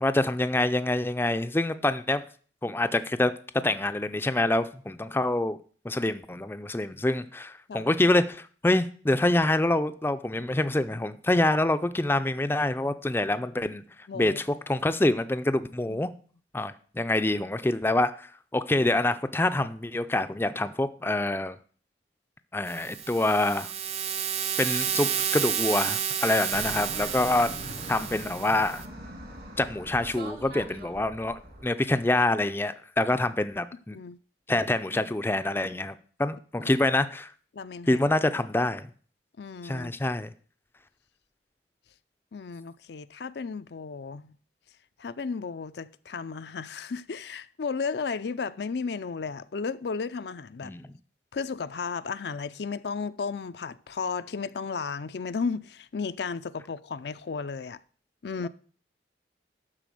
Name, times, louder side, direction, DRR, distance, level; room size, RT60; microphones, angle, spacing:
voice 1, 0.0-2.2 2.6-3.3 3.6-5.6 5.8-13.8 14.1-16.1 16.5-21.6 22.5-23.7 24.6-27.5 27.9-28.8 29.6-34.0 34.5-37.3 37.9-38.9 39.6-40.3 50.6-50.9, left 2 dB, 15° left, 0.4 m, -26 dB
voice 2, 14.1-14.4 15.9-16.0 33.9-34.2 36.6-36.7 37.5-38.0 39.4-39.9 42.3-44.4 45.0-50.7 51.3-57.8 58.2-58.5, left 5 dB, 70° left, 0.5 m, -34 dB
sound 1, 22.7-28.9, right 9 dB, 35° right, 0.6 m, -31 dB
Fixed-wing aircraft airplane, 26.5-31.6, equal, 65° right, 2.4 m, -42 dB
12.5 x 4.2 x 7.6 m
head